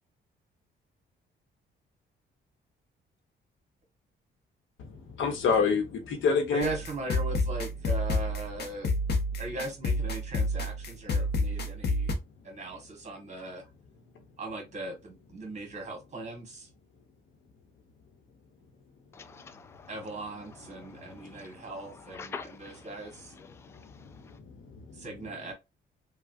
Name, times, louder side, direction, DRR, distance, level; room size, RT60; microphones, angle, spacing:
voice 1, 4.8-6.7 21.2-21.3 24.3-25.0, left 5 dB, 80° left, 1.0 m, -28 dB
voice 2, 6.5-8.9 9.4-12.1 12.4-13.6 14.4-16.7 19.9-23.3 24.9-25.5, right 2 dB, 35° right, 1.5 m, -39 dB
sound 1, 6.6-12.1, left 1 dB, 55° left, 0.8 m, -29 dB
voice 3, 19.1-19.9 20.8-21.4 22.1-22.8 23.5-23.8, left 5 dB, 15° left, 0.3 m, -45 dB
3.2 x 2.3 x 2.6 m
cardioid pair, 90°, 20 cm